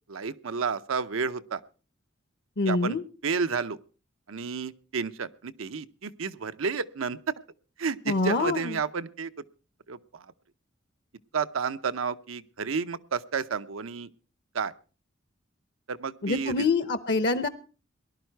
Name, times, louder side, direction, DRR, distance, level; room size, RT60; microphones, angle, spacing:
voice 1, 0.1-1.6 2.7-3.0 3.2-3.8 4.3-7.3 7.8-9.3 9.9-10.3 11.3-14.1 14.5-14.7 15.9-16.7, right 5 dB, 85° right, 11 dB, 0.7 m, -31 dB
voice 2, 2.6-3.0 8.1-8.8 16.2-17.5, left 3 dB, 55° left, 13 dB, 0.8 m, -26 dB
19.0 x 11.5 x 4.5 m, 0.37 s
head